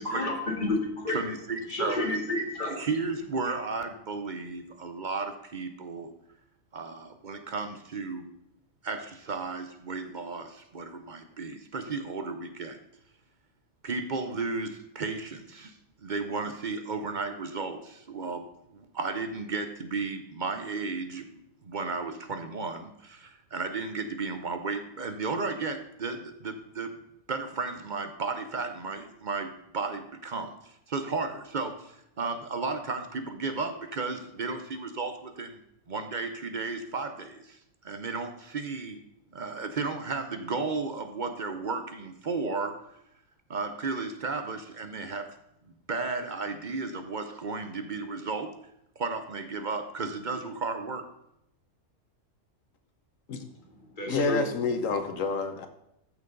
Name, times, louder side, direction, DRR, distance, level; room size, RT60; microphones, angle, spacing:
voice 1, 0.0-1.2 1.7-2.8 53.4-53.5 53.9-54.4, left 2 dB, 40° left, 0 dB, 2.1 m, -30 dB
voice 2, 1.1-2.0 2.8-6.1 6.7-8.3 8.8-12.8 13.8-15.7 16.0-18.4 18.7-21.3 21.6-26.9 27.3-35.6 35.9-37.6 37.8-39.0 39.3-42.7 43.5-45.3 45.9-48.5 49.0-51.0, right 4 dB, 45° right, 8 dB, 0.8 m, -34 dB
voice 3, 54.1-55.7, left 4 dB, 90° left, 8 dB, 1.4 m, -28 dB
14.0 x 6.2 x 3.9 m, 0.81 s
omnidirectional pair, 1.3 m